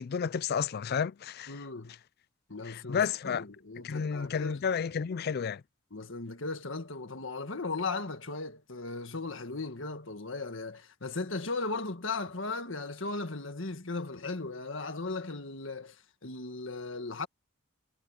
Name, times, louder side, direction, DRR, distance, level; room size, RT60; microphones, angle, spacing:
voice 1, 0.0-1.6 2.7-3.4 3.8-5.6, left 6 dB, 50° left, 0.4 m, -31 dB
voice 2, 1.5-2.0 2.5-4.6 5.9-16.0 16.2-17.3, left 3 dB, 70° left, 1.8 m, -37 dB
head